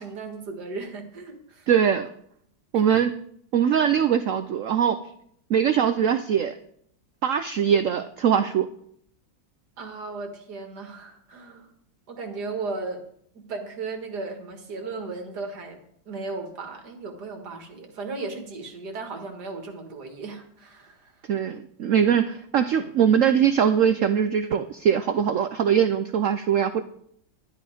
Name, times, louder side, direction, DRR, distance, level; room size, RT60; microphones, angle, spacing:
voice 1, 0.0-1.7 2.7-3.1 9.8-11.7 12.1-13.0 13.3-15.8 16.1-21.1, right 3 dB, 60° right, 3 dB, 2.4 m, -36 dB
voice 2, 1.7-2.1 2.7-3.1 3.5-5.0 5.5-6.5 7.2-8.7 21.3-26.8, right 8 dB, 80° right, 9 dB, 0.7 m, -22 dB
12.0 x 11.0 x 5.0 m, 0.69 s
omnidirectional pair, 2.1 m